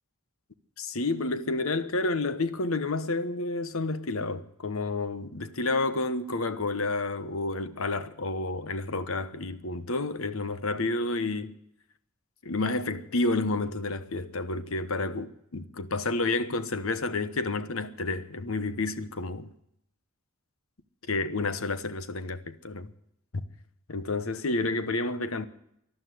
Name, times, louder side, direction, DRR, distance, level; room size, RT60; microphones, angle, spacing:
voice 1, 0.8-11.6 12.4-19.5 21.1-22.9 23.3-23.4 23.9-25.5, left 2 dB, 85° left, 1.1 m, -30 dB
13.0 x 11.5 x 9.4 m
head